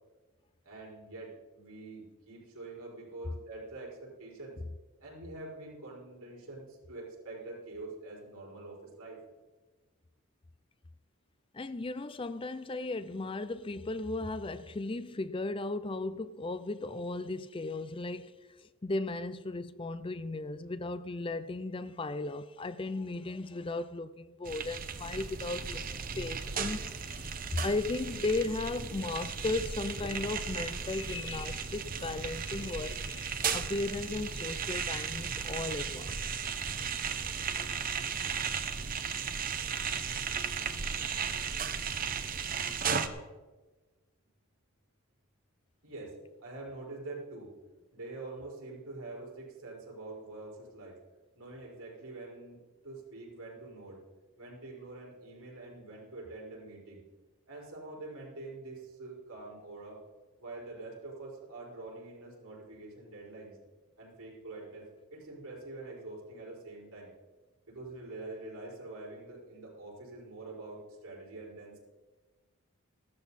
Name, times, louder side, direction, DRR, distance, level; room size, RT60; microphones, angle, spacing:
voice 1, 0.6-4.6 5.0-9.2 45.8-47.5 47.9-51.0 51.4-54.0 54.4-57.1 57.5-60.0 60.4-63.6 64.0-67.1 67.7-71.8, right 2 dB, 85° right, 5.2 m, -45 dB
voice 2, 11.5-36.5, left 2 dB, 25° left, 0.4 m, -36 dB
sound 1, 24.5-43.1, right 6 dB, 40° right, 0.8 m, -35 dB
15.5 x 13.0 x 4.2 m
head